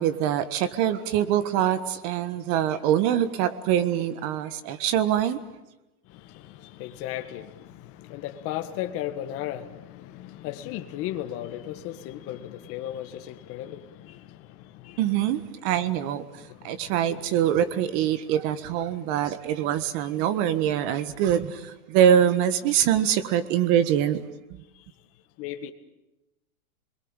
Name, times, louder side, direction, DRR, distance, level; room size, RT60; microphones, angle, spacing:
voice 1, 0.0-5.4 15.0-16.2 16.6-24.2, right 10 dB, 35° right, 1.6 m, -24 dB
voice 2, 6.1-15.0 16.3-17.5 25.4-25.7, left 12 dB, 30° left, 1.8 m, -36 dB
27.5 x 22.0 x 9.0 m
supercardioid pair, 155°, 44 cm